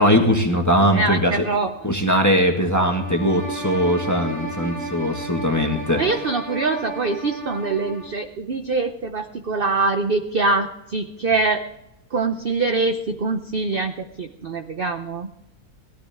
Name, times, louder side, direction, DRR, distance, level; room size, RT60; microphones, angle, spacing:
voice 1, 0.0-1.5 1.8-6.0, equal, 10° left, 2 dB, 1.6 m, -20 dB
voice 2, 0.9-1.7 6.0-11.6 12.1-15.3, right 3 dB, 45° right, 6 dB, 0.8 m, -24 dB
sound 1, 2.8-8.2, right 3 dB, 80° right, 4.9 m, -33 dB
18.5 x 13.5 x 3.6 m, 0.90 s
omnidirectional pair, 1.6 m